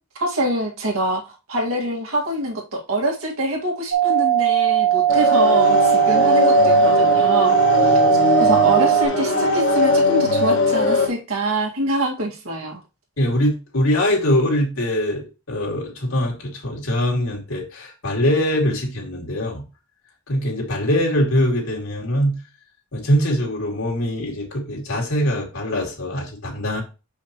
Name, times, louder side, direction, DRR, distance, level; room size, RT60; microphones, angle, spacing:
voice 1, 0.2-1.2 1.5-7.6 7.8-8.0 8.4-12.8, right 1 dB, 75° right, 0 dB, 2.1 m, -25 dB
sound 1, 3.9-9.1, right 12 dB, 50° right, 1.1 m, -18 dB
sound 2, 5.1-11.1, left 2 dB, 55° left, 1.9 m, -19 dB
voice 2, 13.2-19.6 20.3-22.4 22.9-26.8, equal, 75° left, -2 dB, 2.5 m, -22 dB
6.6 x 5.6 x 3.0 m, 0.30 s
head